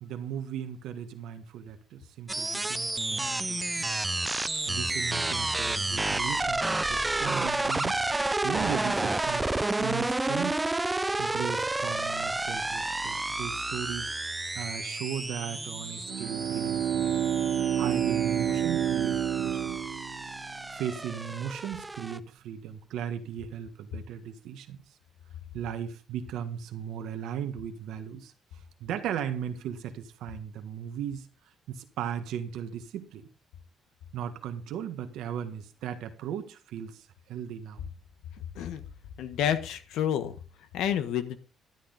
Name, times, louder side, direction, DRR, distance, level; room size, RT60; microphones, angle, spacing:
voice 1, 0.0-3.9 4.6-8.0 8.4-10.6 11.2-14.1 14.5-17.3 17.7-19.7 20.7-24.8 25.5-28.3 28.8-31.2 31.7-33.2 34.1-37.8, right 9 dB, 85° right, 7 dB, 1.6 m, -37 dB
sound 1, 2.3-22.2, right 2 dB, 15° right, 0.6 m, -31 dB
Bowed string instrument, 16.1-20.7, right 9 dB, 70° right, 0.6 m, -29 dB
voice 2, 38.4-38.8 39.2-40.4 40.7-41.4, left 9 dB, 90° left, 10 dB, 1.3 m, -29 dB
12.5 x 8.7 x 4.0 m, 0.36 s
cardioid pair, 90°, 0 cm